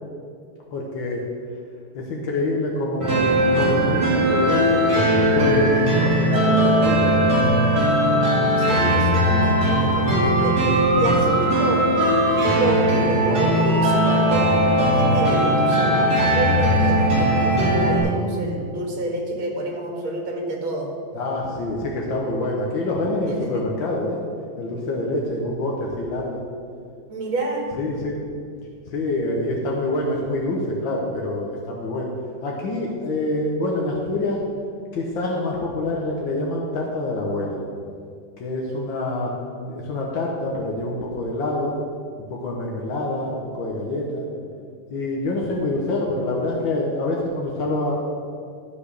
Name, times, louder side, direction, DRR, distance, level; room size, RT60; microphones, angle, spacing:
voice 1, 0.7-1.3 2.0-3.2 3.5-4.9 5.3-7.4 21.1-24.2 24.6-26.4 27.8-28.2 28.9-32.1 32.4-34.4 34.9-37.6 38.4-41.7 42.2-44.2 44.9-47.9, left 2 dB, 75° left, -2 dB, 1.8 m, -26 dB
sound 1, 3.0-18.0, right 1 dB, 50° right, 3.1 m, -19 dB
voice 2, 8.6-10.6 11.0-11.9 12.6-14.6 15.0-20.9 23.4-23.5 27.1-27.7, right 2 dB, 80° right, 0 dB, 2.5 m, -28 dB
12.5 x 5.3 x 6.6 m, 2.3 s
omnidirectional pair, 2.2 m